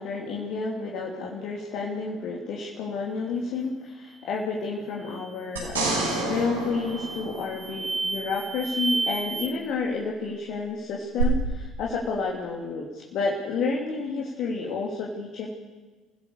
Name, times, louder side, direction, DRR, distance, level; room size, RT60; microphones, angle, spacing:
voice 1, 0.0-15.5, left 4 dB, 55° left, -2 dB, 2.9 m, -30 dB
sound 1, 5.0-5.3 5.8-6.3 6.8-9.5, right 3 dB, 15° right, 2.8 m, -32 dB
sound 2, 5.6-8.1 11.2-11.3, right 3 dB, 80° right, 5.8 m, -29 dB
28.5 x 16.0 x 6.8 m, 1.3 s
figure-of-eight pair, 55°, 0 cm